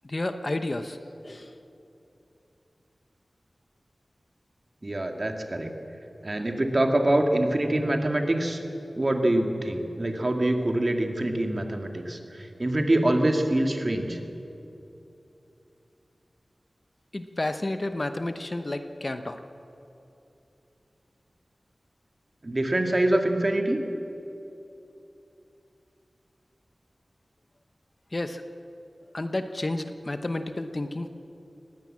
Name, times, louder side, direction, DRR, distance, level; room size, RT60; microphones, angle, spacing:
voice 1, 0.0-1.0 1.2-1.5 17.1-19.4 28.1-28.4 29.1-31.1, left 2 dB, 40° left, 8 dB, 1.0 m, -31 dB
voice 2, 4.8-5.7 6.2-8.6 8.9-14.2 22.4-23.8, right 1 dB, 40° right, 3 dB, 2.1 m, -25 dB
19.0 x 18.0 x 7.6 m, 2.9 s
wide cardioid pair, 70°, 0 cm